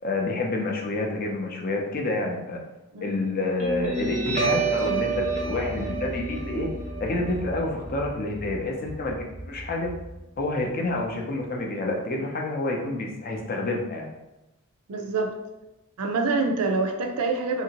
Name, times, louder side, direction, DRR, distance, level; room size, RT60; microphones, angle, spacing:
voice 1, 0.0-2.6 3.0-6.7 7.0-9.9 10.4-14.1, left 2 dB, 40° left, 1 dB, 0.5 m, -28 dB
Guitar, 3.6-10.6, right 4 dB, 30° right, 0.5 m, -30 dB
voice 2, 14.9-15.3 16.0-17.6, right 3 dB, 85° right, 4 dB, 0.4 m, -26 dB
2.8 x 2.6 x 2.8 m, 0.97 s
head